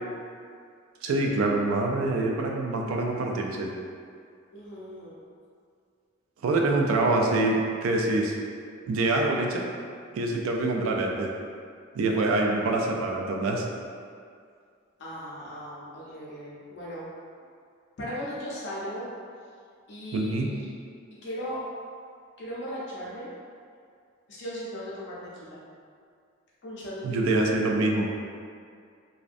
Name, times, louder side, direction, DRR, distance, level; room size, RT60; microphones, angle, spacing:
voice 1, 1.0-3.7 6.4-8.4 8.9-9.6 10.1-11.3 11.9-13.6 20.1-20.5 27.0-28.1, right 2 dB, 85° right, 0 dB, 0.3 m, -25 dB
voice 2, 4.5-5.1 15.0-17.1 18.0-19.1 19.9-20.7 21.2-21.6 22.4-23.3 24.3-25.6 26.6-27.4, equal, 55° left, -7 dB, 0.5 m, -37 dB
2.5 x 2.1 x 2.4 m, 2.2 s
head